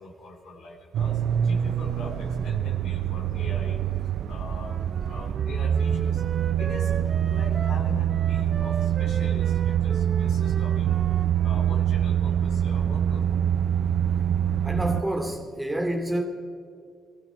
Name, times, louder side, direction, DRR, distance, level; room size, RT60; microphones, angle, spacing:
voice 1, 0.0-6.2 6.6-6.9 7.3-11.1 11.4-13.3, left 2 dB, 80° left, 1 dB, 3.5 m, -42 dB
sound 1, 0.9-15.0, right 9 dB, 70° right, 0.6 m, -25 dB
Wind instrument woodwind instrument, 4.5-11.8, right 5 dB, 45° right, 1.0 m, -40 dB
voice 2, 14.6-16.2, right 1 dB, 10° right, 3 dB, 2.6 m, -28 dB
20.0 x 15.0 x 4.4 m, 2.4 s
cardioid pair, 90°, 0 cm